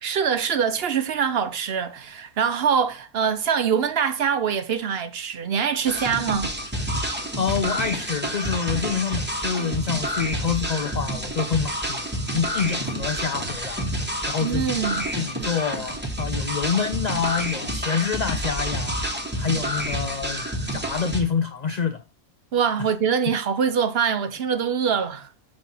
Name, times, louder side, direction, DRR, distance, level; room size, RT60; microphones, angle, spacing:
voice 1, 0.0-6.5 14.4-15.0 22.5-25.3, right 7 dB, 55° right, 0.8 m, -24 dB
sound 1, 5.9-21.2, equal, 10° right, 0.9 m, -29 dB
voice 2, 7.4-13.8 14.3-20.4 20.7-22.0 22.8-22.9, left 6 dB, 85° left, 0.3 m, -27 dB
6.2 x 4.3 x 5.4 m
omnidirectional pair, 1.4 m